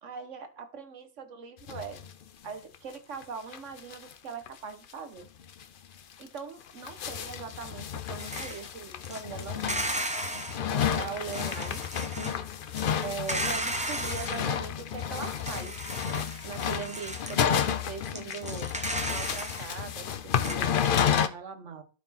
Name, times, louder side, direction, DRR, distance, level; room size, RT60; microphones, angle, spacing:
voice 1, 0.0-2.0 2.4-5.3 6.2-9.9 10.2-11.8 12.2-12.4 13.0-18.7 19.1-21.8, right 5 dB, 60° right, 8 dB, 1.4 m, -41 dB
sound 1, 1.7-2.1 2.4-2.5 2.7-2.8 3.2-3.3 3.5-4.1 4.5-4.6 4.9-5.0 5.5-5.6 6.2-21.3, left 8 dB, 60° left, 0.6 m, -31 dB
sound 2, 8.2-8.7 9.0-10.6 11.3-12.4 12.8-14.4 15.0-17.4 17.6-17.7 18.1-19.7 20.1-20.2 20.4-20.5, right 1 dB, 10° right, 0.5 m, -35 dB
12.5 x 4.2 x 4.2 m, 0.35 s
omnidirectional pair, 1.5 m